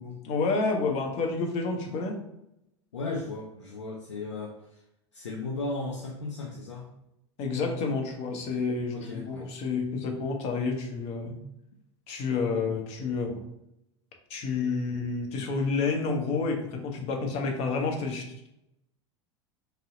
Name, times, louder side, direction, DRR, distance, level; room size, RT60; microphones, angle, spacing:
voice 1, 0.2-2.2 7.4-11.3 12.1-13.4 14.3-18.5, left 4 dB, 45° left, 3 dB, 0.7 m, -29 dB
voice 2, 2.9-4.8 5.1-6.9 8.9-9.5 11.3-11.5, left 3 dB, 85° left, -1 dB, 0.4 m, -36 dB
2.7 x 2.0 x 3.7 m, 0.83 s
hypercardioid pair, 85°, 15 cm